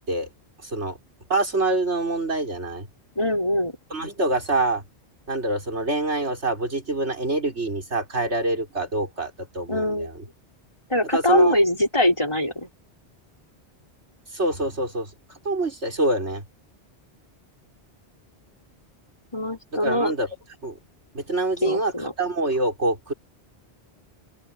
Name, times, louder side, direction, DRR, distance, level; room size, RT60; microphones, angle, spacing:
voice 1, 0.6-1.0 1.3-2.9 3.9-4.8 5.3-10.1 11.1-11.6 14.3-15.1 15.5-16.4 19.8-20.3 20.6-20.8 21.1-21.9 22.2-23.1, right 2 dB, 90° right, 5.6 m, -25 dB
voice 2, 3.2-3.7 9.7-10.1 10.9-12.7 19.3-20.1 21.6-22.1, left 1 dB, 25° left, 5.4 m, -22 dB
open air
omnidirectional pair, 1.1 m